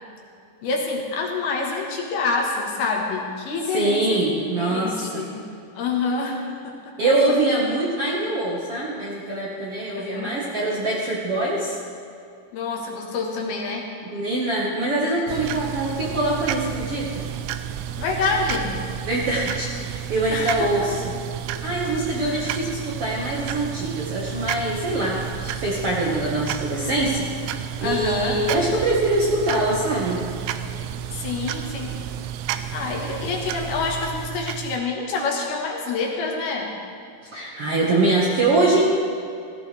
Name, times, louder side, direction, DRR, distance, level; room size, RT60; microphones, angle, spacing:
voice 1, 0.6-5.4 5.7-6.9 10.0-10.3 12.5-14.0 18.0-18.8 20.3-20.9 22.2-22.4 27.8-28.4 31.1-32.0 32.7-36.8, left 4 dB, 65° left, -1 dB, 3.2 m, -27 dB
voice 2, 3.7-5.2 7.0-11.8 14.0-17.3 19.0-21.1 21.6-27.3 27.5-30.2 37.3-38.9, right 2 dB, 65° right, -5 dB, 1.4 m, -23 dB
sound 1, 15.3-34.8, right 10 dB, 85° right, 2.8 m, -31 dB
16.5 x 16.0 x 3.4 m, 2.5 s
omnidirectional pair, 5.0 m